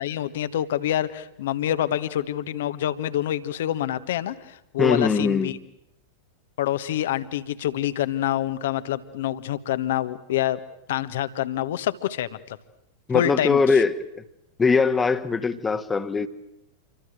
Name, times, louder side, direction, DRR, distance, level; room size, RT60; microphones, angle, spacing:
voice 1, 0.0-5.6 6.6-10.6 10.9-12.6 13.1-13.8, left 12 dB, 55° left, 13 dB, 1.4 m, -26 dB
voice 2, 4.8-5.5 13.1-14.2 14.6-16.3, left 4 dB, 15° left, 11 dB, 1.5 m, -21 dB
28.0 x 24.0 x 7.9 m, 0.82 s
figure-of-eight pair, 90°, 0 cm